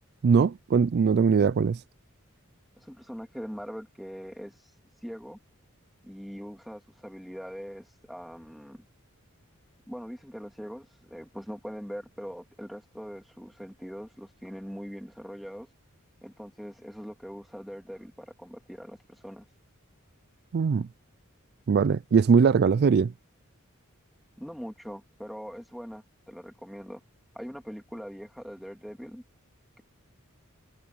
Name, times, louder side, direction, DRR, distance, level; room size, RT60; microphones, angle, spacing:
voice 1, 0.2-1.8 20.5-20.9 21.7-23.1, right 5 dB, 50° right, 0.4 m, -21 dB
voice 2, 2.8-4.5 5.0-5.4 6.0-8.8 9.9-15.7 16.2-19.5 24.4-27.0 27.3-29.2, equal, ahead, 2.5 m, -42 dB
head